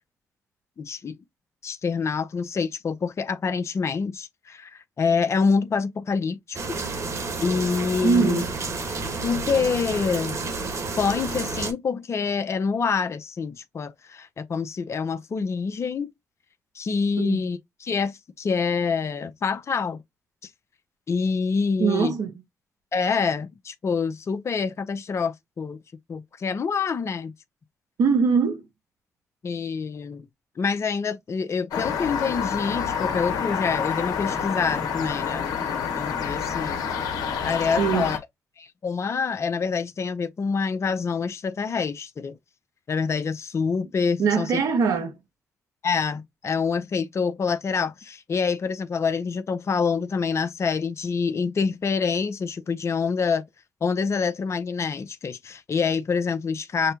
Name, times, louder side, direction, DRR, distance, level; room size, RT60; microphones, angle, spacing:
voice 1, 0.8-1.1 1.6-6.6 7.4-8.4 9.2-10.4 11.0-16.1 16.8-20.0 21.1-22.1 22.9-25.8 26.1-27.3 29.4-30.3 30.6-36.9 37.2-38.2 38.6-42.4 42.9-44.6 45.8-53.4 53.8-56.9, left 5 dB, 50° left, 0.7 m, -26 dB
sound 1, 6.5-11.7, right 3 dB, 55° right, 1.5 m, -30 dB
voice 2, 8.0-8.5 17.2-17.4 21.8-22.3 28.0-28.6 37.8-38.1 44.2-45.2, right 5 dB, 75° right, 1.2 m, -22 dB
sound 2, 31.7-38.2, left 7 dB, 75° left, 1.3 m, -28 dB
6.4 x 2.1 x 2.9 m
supercardioid pair, 50°, 6 cm